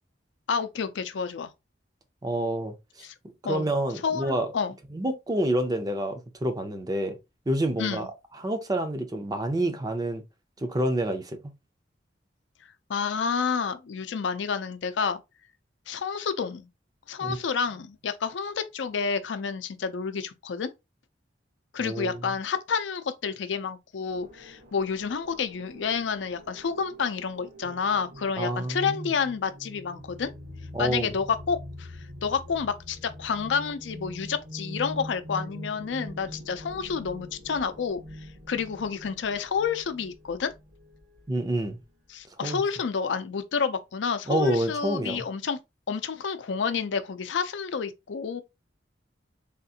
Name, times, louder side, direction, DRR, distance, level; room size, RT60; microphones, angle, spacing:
voice 1, 0.5-1.5 3.0-3.1 3.4-3.7 4.0-4.7 7.8-8.1 12.9-15.2 15.9-16.7 17.1-20.7 21.7-30.3 30.8-31.9 32.2-38.0 38.5-40.5 42.1-45.6 45.9-48.4, left 6 dB, 85° left, 0.5 m, -29 dB
voice 2, 2.2-2.7 3.4-4.5 4.9-7.2 7.5-8.1 8.4-10.2 10.6-11.5 17.2-17.4 21.8-22.3 28.4-29.1 30.7-31.1 41.3-41.8 42.4-42.6 44.3-45.2, right 1 dB, 20° right, 0.5 m, -28 dB
sound 1, 24.1-41.2, equal, 80° right, 1.8 m, -44 dB
3.5 x 2.4 x 2.7 m
head